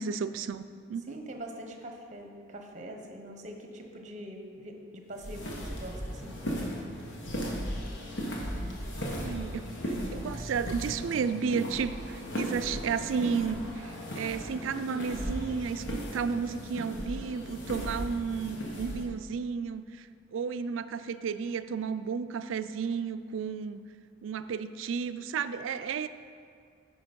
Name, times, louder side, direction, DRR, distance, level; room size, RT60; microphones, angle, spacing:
voice 1, 0.0-1.2 9.0-23.8 24.2-26.1, right 6 dB, 75° right, 12 dB, 0.3 m, -33 dB
voice 2, 1.1-6.4, right 1 dB, 35° right, 3 dB, 0.9 m, -43 dB
sound 1, 5.1-19.0, equal, 60° left, 1.3 m, -36 dB
9.5 x 5.2 x 5.2 m, 2.3 s
head